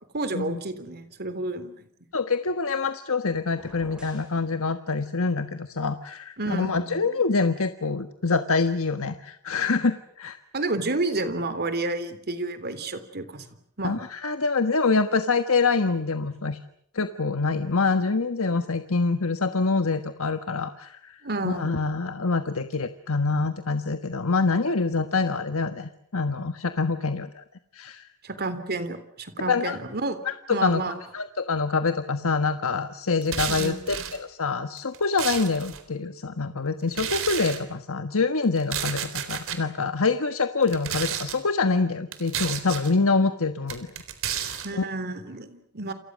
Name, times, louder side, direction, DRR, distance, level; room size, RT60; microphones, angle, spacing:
voice 1, 0.1-1.9 6.4-7.0 10.5-13.5 13.8-14.0 21.2-21.8 28.2-30.2 30.5-31.0 33.5-33.8 44.6-45.9, right 2 dB, 45° right, 11 dB, 3.6 m, -30 dB
voice 2, 2.1-10.4 13.8-16.6 16.9-27.4 27.7-28.1 29.5-29.8 30.2-43.9 44.3-44.9, left 4 dB, 65° left, 8 dB, 1.4 m, -26 dB
sound 1, 3.4-4.4, right 1 dB, 5° right, 7.5 m, -48 dB
sound 2, 33.2-34.2 34.8-35.8 36.9-37.6 38.6-39.6 40.6-41.4 42.1-42.9 43.7-44.7, right 9 dB, 65° right, 3.9 m, -31 dB
29.0 x 28.5 x 6.5 m, 0.68 s
head